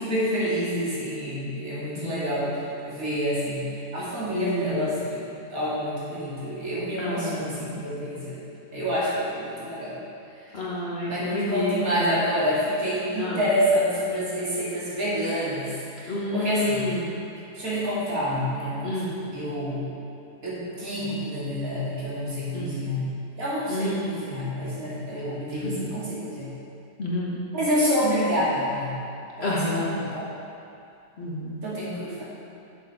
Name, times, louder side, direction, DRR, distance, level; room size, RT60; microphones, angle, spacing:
voice 1, 0.0-3.7 3.9-8.4 8.7-10.0 11.1-17.0 17.5-19.9 20.4-23.1 23.4-26.5 27.5-28.9 29.4-30.3 31.6-32.2, equal, 65° right, -9 dB, 2.6 m, -28 dB
voice 2, 4.3-4.8 7.0-7.8 10.5-12.1 13.2-13.4 16.1-17.0 18.8-19.1 22.5-22.7 23.7-24.0 27.0-27.4 29.4-29.9 31.2-31.5, left 2 dB, 45° left, -7 dB, 1.5 m, -29 dB
7.1 x 6.7 x 4.8 m, 2.6 s
omnidirectional pair, 1.6 m